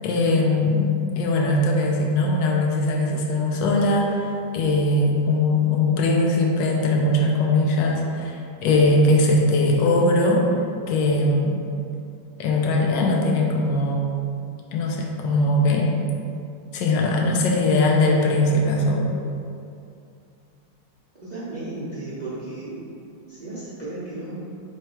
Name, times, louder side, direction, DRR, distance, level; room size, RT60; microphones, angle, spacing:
voice 1, 0.0-10.5 10.9-11.6 12.4-14.0 14.7-16.0 16.7-19.1, left 2 dB, 80° left, -1 dB, 1.3 m, -20 dB
voice 2, 21.1-22.8 23.3-24.4, right 2 dB, 45° right, -11 dB, 0.5 m, -34 dB
3.5 x 3.3 x 4.3 m, 2.5 s
omnidirectional pair, 2.0 m